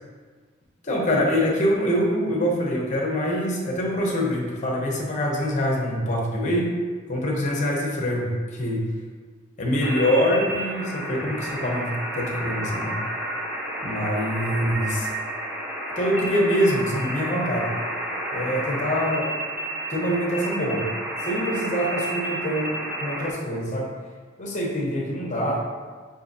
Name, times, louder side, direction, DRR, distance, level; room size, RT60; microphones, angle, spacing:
voice 1, 0.8-6.7 7.1-8.8 9.6-13.0 13.8-15.1 16.0-17.7 18.3-19.3 19.9-20.9 21.2-23.9 24.4-25.7, equal, 40° left, -1 dB, 0.8 m, -25 dB
sound 1, 9.8-23.3, right 1 dB, 10° right, 0.5 m, -31 dB
6.1 x 2.7 x 2.6 m, 1.5 s
head